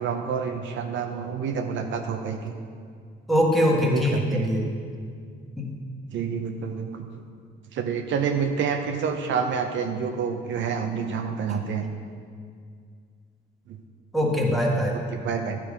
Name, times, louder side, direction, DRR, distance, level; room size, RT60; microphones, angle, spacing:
voice 1, 0.0-2.5 3.8-4.5 6.1-7.1 7.7-11.9 13.7-13.8 14.9-15.6, right 6 dB, 70° right, 5 dB, 0.6 m, -28 dB
voice 2, 3.3-4.6 5.6-5.7 14.1-15.0, equal, ahead, -2 dB, 1.6 m, -22 dB
11.0 x 5.0 x 5.0 m, 2.1 s
cardioid pair, 90°, 20 cm